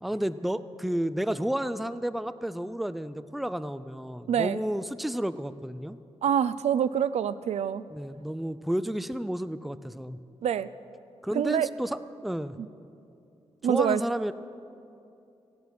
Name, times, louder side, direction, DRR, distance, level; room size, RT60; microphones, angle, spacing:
voice 1, 0.0-6.0 7.9-10.2 11.2-12.6 13.7-14.3, right 1 dB, ahead, 14 dB, 0.4 m, -31 dB
voice 2, 4.3-4.6 6.2-7.8 10.4-10.7 11.3-11.7 12.6-12.7 13.6-14.0, right 9 dB, 70° right, 16 dB, 0.4 m, -26 dB
16.5 x 9.5 x 5.9 m, 2.7 s
cardioid pair, 60°, 11 cm